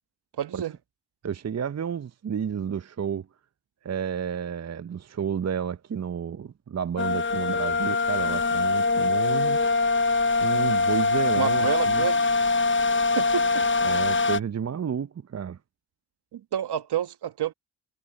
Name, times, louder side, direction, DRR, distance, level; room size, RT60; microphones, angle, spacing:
voice 1, 0.4-0.7 11.4-12.3 13.2-13.6 16.3-17.5, right 10 dB, 65° right, 1.7 m, -29 dB
voice 2, 1.2-3.3 3.8-9.6 10.4-12.0 13.8-15.6, right 7 dB, 35° right, 0.8 m, -31 dB
sound 1, 7.0-14.4, left 3 dB, 25° left, 0.9 m, -23 dB
hypercardioid pair, 40°, 43 cm